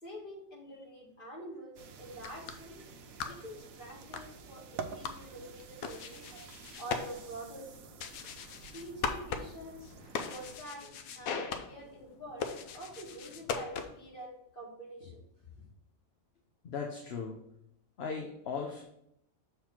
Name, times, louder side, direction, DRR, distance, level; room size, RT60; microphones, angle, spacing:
voice 1, 0.0-2.8 3.2-6.2 6.7-7.9 8.7-10.0 10.3-12.5 12.7-15.2, right 1 dB, 40° left, -4 dB, 2.4 m, -46 dB
sound 1, 1.8-10.6, right 6 dB, 80° right, 1.1 m, -49 dB
sound 2, 2.1-14.1, left 6 dB, 85° left, 1.2 m, -41 dB
voice 2, 16.6-17.4 18.0-18.8, left 5 dB, 55° left, 2 dB, 0.9 m, -37 dB
6.8 x 3.8 x 5.9 m, 0.75 s
omnidirectional pair, 1.4 m